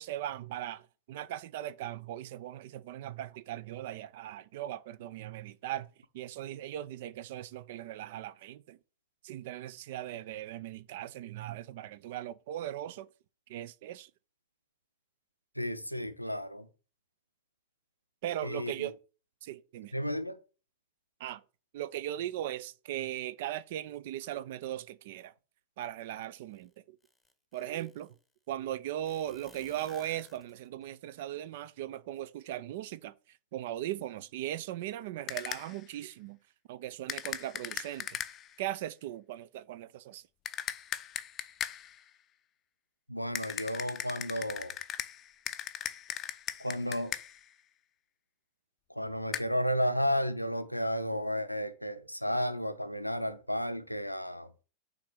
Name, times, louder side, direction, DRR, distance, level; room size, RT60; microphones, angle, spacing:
voice 1, 0.0-5.9 6.1-8.8 9.2-13.1 13.5-14.1 18.2-18.9 19.4-19.9 21.2-21.4 21.7-25.3 25.8-27.0 27.5-28.1 28.5-36.4 36.7-38.2 38.6-40.2, right 12 dB, 55° right, 0.4 m, -38 dB
voice 2, 15.6-16.7 18.4-18.9 19.9-20.4 43.1-44.7 46.6-47.1 48.9-54.5, equal, 90° left, 0.6 m, -33 dB
sound 1, 26.5-26.6 27.0-28.1 29.0-30.9, left 2 dB, 5° left, 0.9 m, -58 dB
sound 2, 35.3-35.8 37.1-38.6 40.5-42.0 43.4-47.5 49.3-49.4, left 10 dB, 30° left, 0.5 m, -38 dB
5.9 x 3.8 x 5.9 m
figure-of-eight pair, 90°, 0 cm